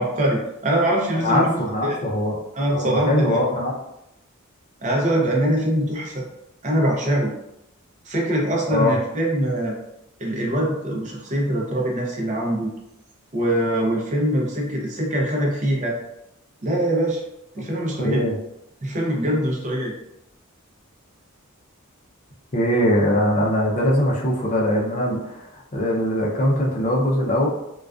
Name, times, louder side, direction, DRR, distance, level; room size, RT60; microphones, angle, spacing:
voice 1, 0.0-2.0 2.6-3.4 4.8-6.2 6.6-7.3 8.1-9.7 10.2-12.7 13.3-16.0 16.6-17.2 17.5-18.2 18.8-19.9, right 1 dB, 35° right, -1 dB, 0.6 m, -23 dB
voice 2, 1.2-2.4 2.7-3.8 8.7-9.0 18.0-18.4 22.5-27.5, equal, 35° left, -2 dB, 0.5 m, -21 dB
2.4 x 2.2 x 2.3 m, 0.86 s
head